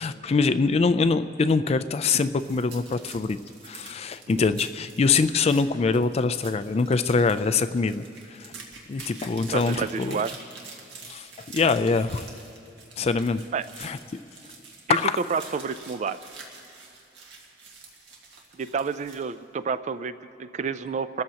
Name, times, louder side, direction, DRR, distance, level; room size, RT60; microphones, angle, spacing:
voice 1, 0.0-3.4 3.6-8.0 8.9-10.2 11.1-11.3 11.5-12.3 13.0-13.4 13.8-14.0 14.9-15.2, left 4 dB, 35° left, 12 dB, 0.3 m, -23 dB
sound 1, 2.0-19.3, right 4 dB, 75° right, 1.9 m, -46 dB
voice 2, 9.5-10.3 13.5-13.7 14.9-15.0 15.3-16.2 18.5-21.2, right 5 dB, 40° right, 13 dB, 0.3 m, -29 dB
29.0 x 13.5 x 2.9 m, 2.8 s
head